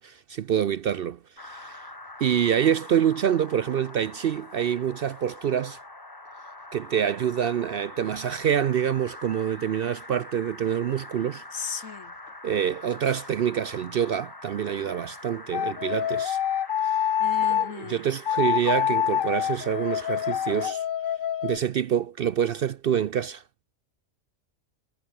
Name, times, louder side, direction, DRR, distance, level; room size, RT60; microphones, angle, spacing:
voice 1, 0.0-1.8 2.2-5.8 6.7-11.7 12.4-16.4 17.5-20.8 21.4-23.4, right 9 dB, 60° right, 0.6 m, -26 dB
sound 1, 1.4-20.7, left 2 dB, 15° left, 1.4 m, -44 dB
voice 2, 11.5-12.1 17.2-18.1, left 6 dB, 70° left, 1.8 m, -36 dB
sound 2, 15.5-17.7 18.2-21.6, left 10 dB, 55° left, 0.7 m, -26 dB
omnidirectional pair, 1.3 m